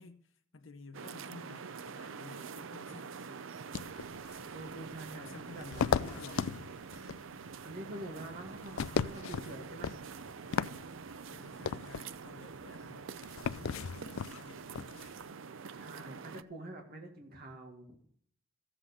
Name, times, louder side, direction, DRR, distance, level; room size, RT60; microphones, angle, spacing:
voice 1, 0.0-3.4 5.1-6.6 11.3-13.1 13.5-14.7, left 3 dB, 65° left, 0.9 m, -52 dB
sound 1, 0.9-16.4, right 5 dB, 70° right, 0.5 m, -46 dB
sound 2, 3.7-15.3, left 6 dB, 85° left, 0.4 m, -37 dB
voice 2, 4.5-6.5 7.6-10.0 15.7-18.0, right 1 dB, 50° right, 2.0 m, -47 dB
15.0 x 7.8 x 5.0 m
head